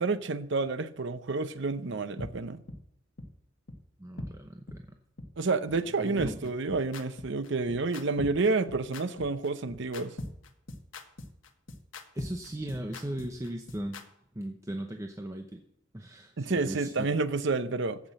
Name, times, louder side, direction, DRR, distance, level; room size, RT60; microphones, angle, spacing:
voice 1, 0.0-2.6 5.4-10.2 16.4-18.0, right 3 dB, 65° right, 0.7 m, -29 dB
sound 1, 2.2-2.3 2.7-2.8 3.2-3.3 3.7-3.8 4.2-4.3 4.7-4.8 5.2-5.3 5.7-5.8 6.2-14.0, left 1 dB, 75° left, 1.4 m, -40 dB
voice 2, 4.0-5.0 6.0-6.5 12.1-14.0 14.3-15.6 15.9-17.1, right 1 dB, 15° right, 0.7 m, -38 dB
14.5 x 6.1 x 7.5 m
head